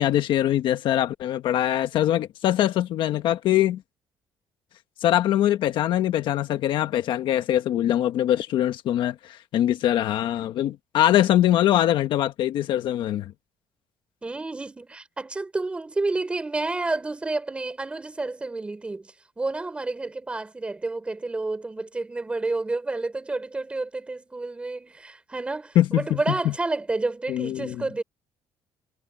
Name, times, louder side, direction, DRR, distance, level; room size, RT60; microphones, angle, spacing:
voice 1, 0.0-3.8 5.0-13.3 25.7-26.2 26.4-26.5 27.3-27.7, left 12 dB, 60° left, 1.1 m, -23 dB
voice 2, 14.2-28.0, right 3 dB, 10° right, 4.3 m, -30 dB
cardioid pair, 180°, 9 cm